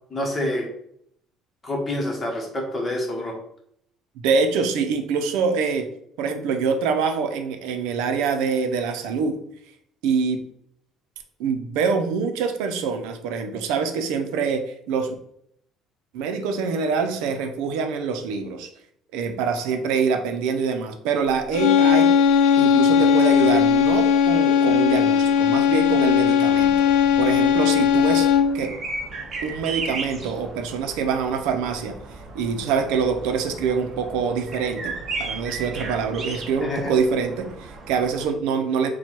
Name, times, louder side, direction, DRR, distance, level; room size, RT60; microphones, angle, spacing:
voice 1, 0.1-0.7 1.6-3.4 36.6-36.9, left 1 dB, 20° left, 0 dB, 1.1 m, -27 dB
voice 2, 4.2-5.9 6.2-9.4 10.0-10.4 11.4-15.1 16.1-18.7 19.1-22.1 22.6-26.9 27.2-28.3 28.5-28.7 29.4-32.0 32.3-34.9 35.2-38.9, right 5 dB, 90° right, 6 dB, 0.5 m, -25 dB
sound 1, 21.5-28.7, left 7 dB, 90° left, 0.5 m, -18 dB
sound 2, 26.4-38.3, right 3 dB, 30° right, 0.8 m, -36 dB
4.4 x 2.3 x 4.4 m, 0.71 s
cardioid pair, 140°, 0 cm